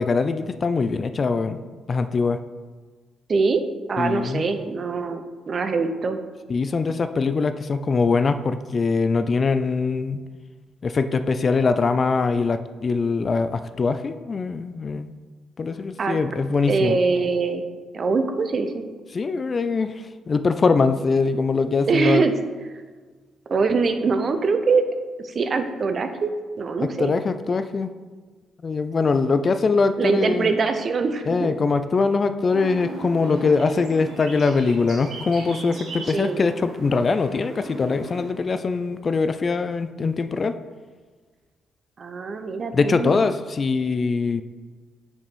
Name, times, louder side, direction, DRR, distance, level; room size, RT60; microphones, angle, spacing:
voice 1, 0.0-1.6 1.9-2.4 4.0-4.4 6.5-10.2 10.8-15.1 15.6-17.0 19.1-22.2 26.8-27.9 28.6-30.5 31.3-40.5 42.7-44.4, left 4 dB, 40° left, 10 dB, 0.4 m, -22 dB
voice 2, 3.3-3.6 3.9-6.2 16.0-16.2 16.7-17.7 17.9-18.8 21.9-22.3 23.5-24.8 25.2-26.3 26.6-27.1 30.0-31.5 36.1-36.4 42.0-43.2, right 4 dB, 45° right, 8 dB, 0.7 m, -23 dB
sound 1, 32.5-38.3, right 3 dB, 70° right, 1.5 m, -38 dB
5.2 x 4.9 x 5.3 m, 1.4 s
cardioid pair, 90°, 0 cm